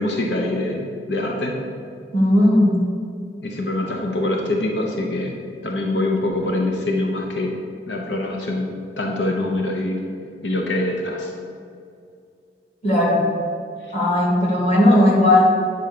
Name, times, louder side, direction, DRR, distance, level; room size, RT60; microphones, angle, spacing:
voice 1, 0.0-1.5 3.4-7.6 7.9-10.0 10.4-11.3, left 2 dB, 90° left, 1 dB, 0.9 m, -24 dB
voice 2, 2.1-2.8 12.8-13.2 13.9-15.4, left 1 dB, 40° left, -3 dB, 1.8 m, -16 dB
8.9 x 4.2 x 6.7 m, 2.4 s
head